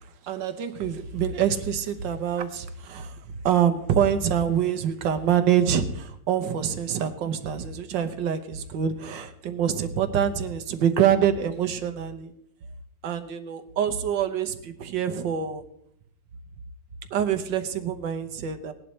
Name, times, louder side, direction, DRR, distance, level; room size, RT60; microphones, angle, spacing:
voice 1, 0.2-3.2 3.4-12.3 13.0-15.6 17.1-18.7, right 8 dB, 65° right, 8 dB, 1.5 m, -25 dB
18.5 x 11.0 x 3.2 m, 0.72 s
omnidirectional pair, 2.4 m